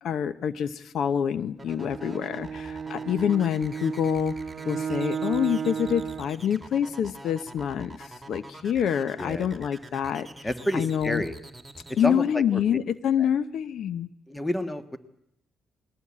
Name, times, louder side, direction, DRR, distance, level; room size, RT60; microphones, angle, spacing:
voice 1, 0.0-4.3 4.6-10.5 10.7-11.2 12.0-14.1, left 8 dB, 70° left, 15 dB, 0.8 m, -26 dB
sound 1, 1.6-12.0, right 2 dB, 5° right, 2.7 m, -45 dB
Bowed string instrument, 1.6-6.4, right 7 dB, 45° right, 0.9 m, -34 dB
voice 2, 9.2-9.5 10.4-11.3 11.9-12.8 14.3-15.0, left 1 dB, 15° left, 11 dB, 1.5 m, -29 dB
20.5 x 18.0 x 8.6 m, 0.76 s
cardioid pair, 90°, 0 cm